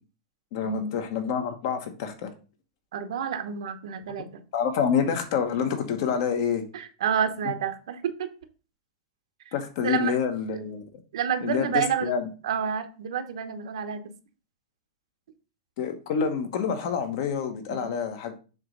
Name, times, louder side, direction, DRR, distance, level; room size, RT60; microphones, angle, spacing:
voice 1, 0.5-2.3 4.5-6.6 9.5-10.8 11.4-12.3 15.8-18.3, left 7 dB, 45° left, 7 dB, 1.1 m, -27 dB
voice 2, 2.9-4.4 6.7-8.3 9.5-9.6 9.8-10.1 11.1-12.1 12.4-14.0 17.7-17.9, right 7 dB, 70° right, 9 dB, 0.9 m, -29 dB
7.2 x 3.0 x 5.3 m, 0.36 s
supercardioid pair, 175°, 3 cm